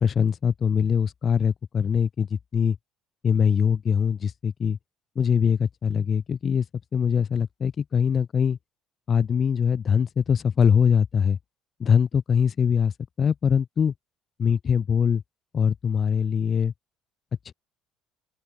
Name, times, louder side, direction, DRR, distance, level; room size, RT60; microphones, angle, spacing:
voice 1, 0.0-2.8 3.2-4.8 5.1-6.7 6.9-8.6 9.1-11.4 11.8-13.9 14.4-15.2 15.5-16.7 17.4-17.5, left 7 dB, 40° left, 1.1 m, -22 dB
open air
hypercardioid pair, 70°, 0 cm